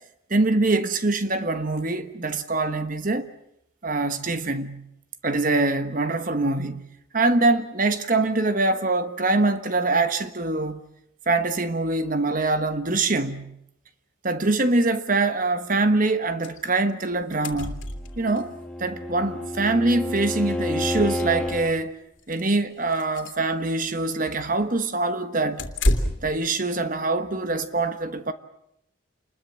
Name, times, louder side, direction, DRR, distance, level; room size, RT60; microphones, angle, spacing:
voice 1, 0.3-3.3 3.8-4.9 5.2-6.8 7.1-10.8 11.3-13.6 14.2-17.8 18.2-18.5 18.8-22.0 22.3-25.6 26.2-28.3, right 2 dB, 40° right, 1.3 m, -24 dB
sound 1, 16.4-16.6 16.9-17.0 17.2-18.4 19.7-19.8 20.2-20.3 20.8-21.7 22.2-22.5 22.9-23.4 25.6-26.4, left 1 dB, 70° left, 2.7 m, -28 dB
Bowed string instrument, 18.0-21.7, left 1 dB, 5° left, 1.8 m, -30 dB
28.0 x 21.0 x 7.5 m
head